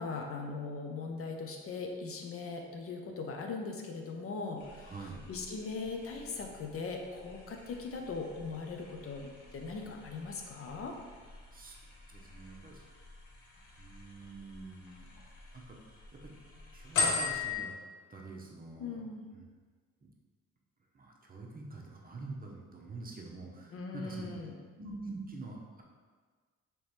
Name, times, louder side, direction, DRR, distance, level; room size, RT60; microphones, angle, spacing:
voice 1, 0.0-11.0 18.8-19.3 23.7-24.6, left 4 dB, 50° left, 3 dB, 0.5 m, -40 dB
sound 1, 4.6-17.6, left 4 dB, 80° left, 0.8 m, -41 dB
voice 2, 4.8-5.2 11.5-11.8 12.1-12.8 13.8-15.1 15.5-15.8 16.7-17.7 18.1-19.0 19.3-19.4 20.9-24.3 24.8-25.8, right 3 dB, 30° right, -1 dB, 0.7 m, -46 dB
3.2 x 3.0 x 4.2 m, 1.5 s
cardioid pair, 90°, 30 cm